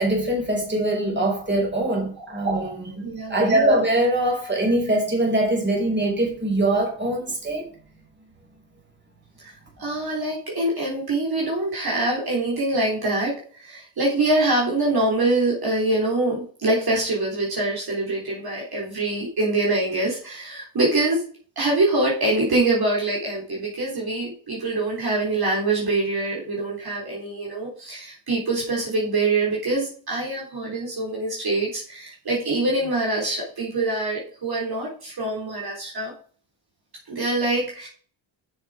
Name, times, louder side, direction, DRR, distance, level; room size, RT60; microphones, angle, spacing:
voice 1, 0.0-7.7, right 1 dB, 20° right, 4.9 m, -22 dB
voice 2, 3.0-3.5 9.4-9.5 9.8-21.2 21.6-36.1 37.1-37.9, right 2 dB, 50° right, 3.9 m, -24 dB
7.1 x 7.0 x 5.1 m
cardioid pair, 90°, 49 cm